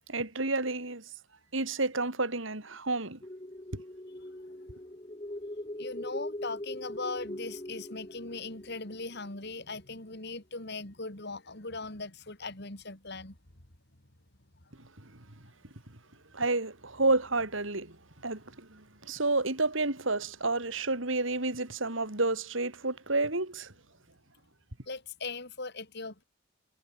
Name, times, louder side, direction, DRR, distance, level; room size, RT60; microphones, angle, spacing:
voice 1, 0.1-1.1 1.5-3.2 3.7-3.8 15.0-15.2 16.3-18.0 18.2-23.7, right 2 dB, 70° right, 3.5 m, -30 dB
sound 1, 3.2-9.7, left 1 dB, 25° left, 2.1 m, -41 dB
voice 2, 5.8-13.4 24.9-26.2, left 3 dB, 55° left, 3.6 m, -39 dB
head